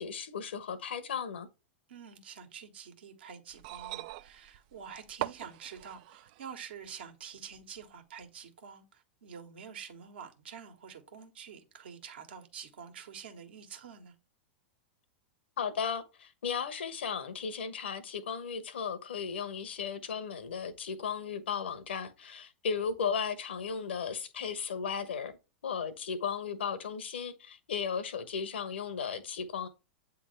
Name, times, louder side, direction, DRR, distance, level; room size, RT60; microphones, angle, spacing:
voice 1, 0.0-1.5 15.6-25.4 25.6-29.7, left 6 dB, 75° left, 1.0 m, -35 dB
voice 2, 1.9-14.1, right 7 dB, 70° right, 1.5 m, -47 dB
sound 1, 3.5-6.5 7.6-7.7, right 16 dB, 50° right, 0.3 m, -41 dB
8.4 x 3.5 x 3.2 m
figure-of-eight pair, 100°, 6 cm